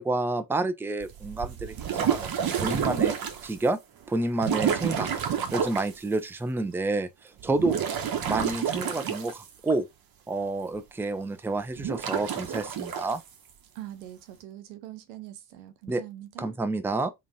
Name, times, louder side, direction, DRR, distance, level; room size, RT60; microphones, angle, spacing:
voice 1, 0.0-3.2 3.4-3.8 4.1-7.8 8.2-9.9 10.3-13.2 15.9-16.0 16.4-17.1, right 2 dB, 5° right, 0.5 m, -29 dB
sound 1, 1.0-3.6 4.4-5.9 7.4-9.7 11.7-13.1, right 8 dB, 45° right, 1.0 m, -29 dB
voice 2, 13.7-16.6, right 13 dB, 80° right, 0.9 m, -43 dB
3.7 x 2.4 x 4.0 m
hypercardioid pair, 55°, 49 cm